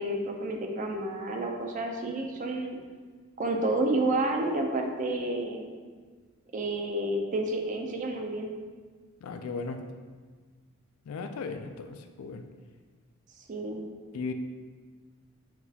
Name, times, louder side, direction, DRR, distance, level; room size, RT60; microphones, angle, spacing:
voice 1, 0.0-2.8 3.4-5.7 6.5-8.5 13.5-13.9, right 2 dB, 35° right, 2 dB, 0.4 m, -30 dB
voice 2, 9.2-9.8 11.1-12.4 14.1-14.3, left 4 dB, 80° left, 7 dB, 0.3 m, -36 dB
5.9 x 2.3 x 2.7 m, 1.5 s
head